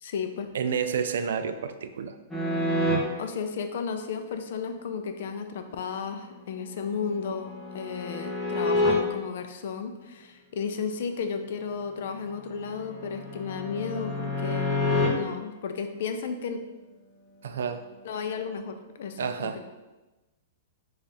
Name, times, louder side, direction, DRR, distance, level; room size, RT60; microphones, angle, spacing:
voice 1, 0.0-0.5 3.2-16.6 18.0-19.6, left 6 dB, 60° left, 7 dB, 0.4 m, -34 dB
voice 2, 0.5-2.2 17.4-17.8 19.2-19.6, right 6 dB, 80° right, 9 dB, 0.3 m, -29 dB
sound 1, 2.3-3.0 6.4-8.9 12.0-15.1, left 1 dB, 5° left, 0.6 m, -29 dB
4.1 x 2.4 x 3.3 m, 1.1 s
supercardioid pair, 165°, 0 cm